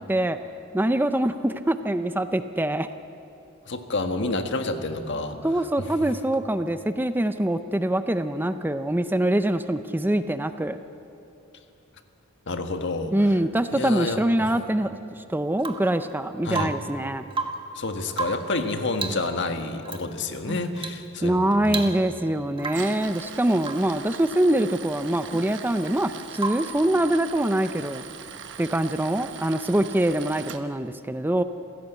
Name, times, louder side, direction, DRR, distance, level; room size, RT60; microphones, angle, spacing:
voice 1, 0.7-2.9 5.4-10.8 13.1-17.3 20.5-20.6 21.2-28.0 28.6-31.4, right 1 dB, 10° right, 10 dB, 0.5 m, -24 dB
voice 2, 3.7-5.5 12.5-13.1 13.7-14.5 16.4-16.7 17.7-21.9 25.3-25.4, left 2 dB, 60° left, 7 dB, 1.6 m, -29 dB
Rain / Water tap faucet / Drip, 15.6-16.0 16.5-17.0 17.3-17.7 18.1-18.6 18.9-19.3 19.9-20.1 20.8-21.1 21.3-21.4 21.7-22.2 22.6-23.0 23.6-23.9 26.4-26.8 28.7-28.8, right 4 dB, 25° right, 1.5 m, -32 dB
Tools, 22.6-30.6, right 7 dB, 60° right, 1.1 m, -41 dB
27.0 x 16.5 x 8.2 m, 2.7 s
head